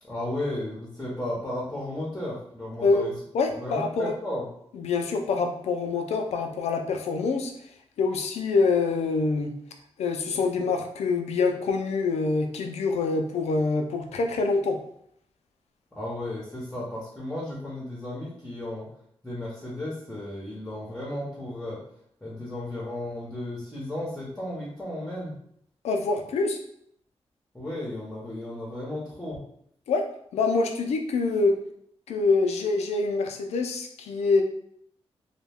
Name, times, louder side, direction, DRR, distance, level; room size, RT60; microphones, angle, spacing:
voice 1, 0.0-3.1 3.5-4.5 15.9-18.9 19.2-21.8 22.2-25.3 27.5-29.4, left 1 dB, 10° left, -6 dB, 0.8 m, -34 dB
voice 2, 3.3-4.1 4.8-7.5 8.0-9.5 10.0-14.8 25.8-26.6 29.9-30.0 30.3-31.6 32.1-34.4, left 4 dB, 90° left, 4 dB, 0.4 m, -25 dB
2.2 x 2.2 x 3.3 m, 0.70 s
cardioid pair, 80°, 11 cm